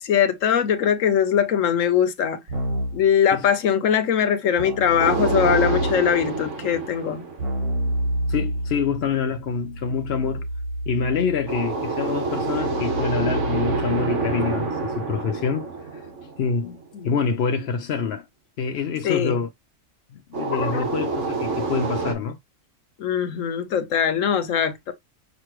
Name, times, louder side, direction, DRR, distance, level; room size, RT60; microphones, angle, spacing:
voice 1, 0.0-2.4 2.9-7.2 16.9-17.1 19.0-19.4 20.5-20.8 23.0-24.9, left 8 dB, 80° left, 1.2 m, -21 dB
Keyboard (musical), 2.5-3.1 4.6-6.2 7.4-14.4, right 1 dB, 85° right, 1.5 m, -29 dB
sound 1, 5.0-8.1 11.5-16.9 20.3-22.1, right 3 dB, 70° right, 1.5 m, -28 dB
voice 2, 8.3-10.5 10.9-15.7 15.9-16.0 16.4-16.8 17.0-18.2 18.6-19.5 20.1-22.4, left 5 dB, 60° left, 0.8 m, -26 dB
6.2 x 2.6 x 3.0 m
omnidirectional pair, 1.3 m